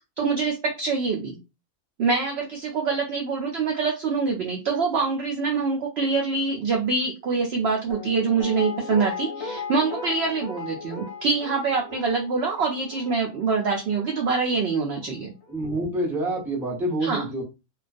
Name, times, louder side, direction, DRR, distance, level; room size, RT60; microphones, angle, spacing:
voice 1, 0.2-1.4 2.0-15.3 17.0-17.2, right 4 dB, 70° right, 1 dB, 0.6 m, -25 dB
Guitar, 7.9-14.9 15.2-15.3, left 5 dB, 70° left, 0.9 m, -37 dB
voice 2, 15.5-17.4, right 1 dB, ahead, -4 dB, 0.7 m, -27 dB
2.3 x 2.2 x 2.4 m, 0.27 s
omnidirectional pair, 1.5 m